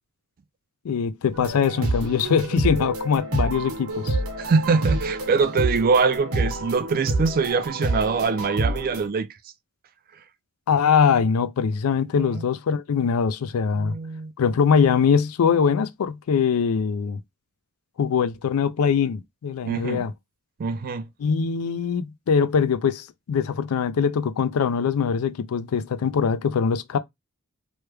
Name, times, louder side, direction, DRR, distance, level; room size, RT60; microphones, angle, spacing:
voice 1, 0.8-4.2 10.7-13.9 14.4-17.2 18.0-20.1 21.2-27.0, left 6 dB, 80° left, 0.4 m, -22 dB
sound 1, 1.3-9.1, right 2 dB, 70° right, 1.0 m, -28 dB
voice 2, 4.4-9.3 12.2-12.5 13.7-14.3 19.6-20.0 20.6-21.1, right 4 dB, 45° right, 0.4 m, -23 dB
3.1 x 2.2 x 3.2 m
head